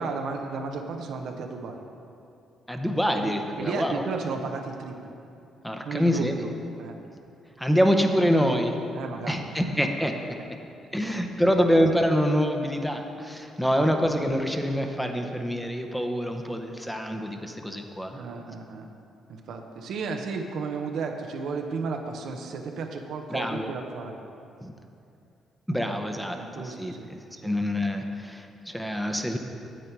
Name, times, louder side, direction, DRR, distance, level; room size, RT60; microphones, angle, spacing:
voice 1, 0.0-1.8 3.1-3.3 3.6-5.2 5.8-6.5 6.8-7.0 8.9-9.5 9.8-10.1 13.7-13.9 18.1-18.9 19.3-24.2 26.3-27.1 27.4-27.6, right 4 dB, 75° right, 3 dB, 0.8 m, -34 dB
voice 2, 2.7-4.0 5.6-6.3 7.6-8.8 9.3-10.1 10.9-18.2 23.3-23.7 24.6-24.7 25.7-26.4 26.6-29.4, equal, ahead, 4 dB, 0.8 m, -25 dB
9.1 x 8.1 x 4.6 m, 2.6 s
cardioid pair, 90°, 0 cm